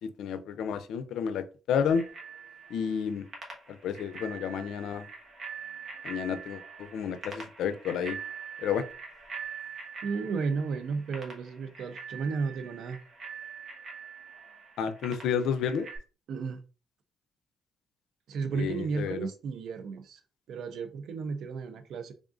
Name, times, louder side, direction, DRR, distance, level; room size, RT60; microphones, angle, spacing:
voice 1, 0.0-2.1 2.7-3.3 3.8-5.1 6.0-8.2 8.6-8.8 14.8-15.9 18.5-19.2, left 7 dB, 80° left, 0.5 m, -31 dB
Bicycle bell, 1.9-16.0, right 5 dB, 35° right, 1.4 m, -44 dB
voice 2, 10.0-13.0 16.3-16.6 18.3-20.2 20.5-22.1, right 5 dB, 70° right, 0.6 m, -33 dB
3.6 x 3.6 x 2.5 m
cardioid pair, 90°, 0 cm